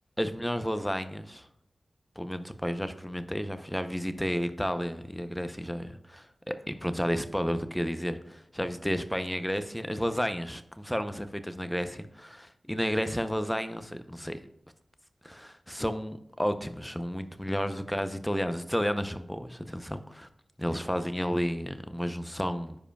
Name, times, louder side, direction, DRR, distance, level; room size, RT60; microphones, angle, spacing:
voice 1, 0.2-1.5 2.2-14.4 15.2-20.3 20.6-22.8, equal, 5° left, 10 dB, 0.6 m, -32 dB
9.9 x 4.9 x 2.3 m, 0.76 s
cardioid pair, 45°, 0 cm